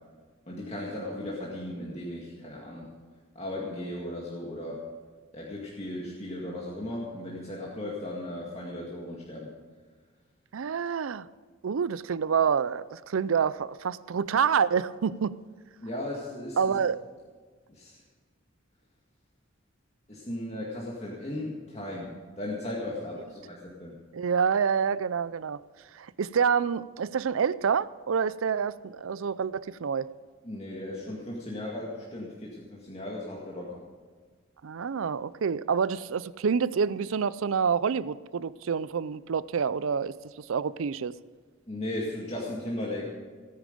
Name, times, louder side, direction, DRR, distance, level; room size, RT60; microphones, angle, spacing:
voice 1, 0.5-2.9 3.4-4.8 5.3-9.5 15.8-16.7 17.7-18.0 20.1-23.9 30.4-33.8 41.7-43.0, left 1 dB, 30° left, -4 dB, 2.0 m, -36 dB
voice 2, 10.5-11.3 11.6-15.4 16.6-17.0 24.1-25.6 25.9-30.1 34.6-41.1, right 6 dB, 80° right, 18 dB, 0.5 m, -27 dB
17.5 x 10.0 x 5.2 m, 1.5 s
head